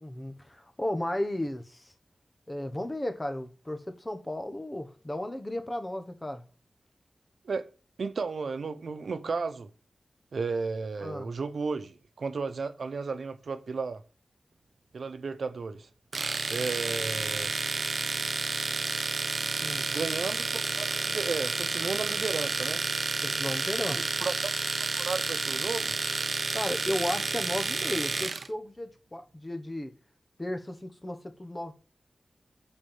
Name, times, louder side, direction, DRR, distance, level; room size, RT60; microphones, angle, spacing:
voice 1, 0.0-1.9 2.5-6.4 11.0-11.3 19.6-19.9 23.2-24.1 26.5-29.9 30.4-31.7, left 1 dB, 20° left, 1.1 m, -34 dB
voice 2, 8.0-9.7 10.3-14.0 14.9-15.9 16.5-17.5 19.9-22.8 23.9-24.3 24.6-25.9, right 4 dB, 80° right, 0.9 m, -34 dB
Domestic sounds home sounds, 16.1-28.5, right 3 dB, 55° right, 0.7 m, -30 dB
8.4 x 4.5 x 7.3 m
wide cardioid pair, 110°, 0 cm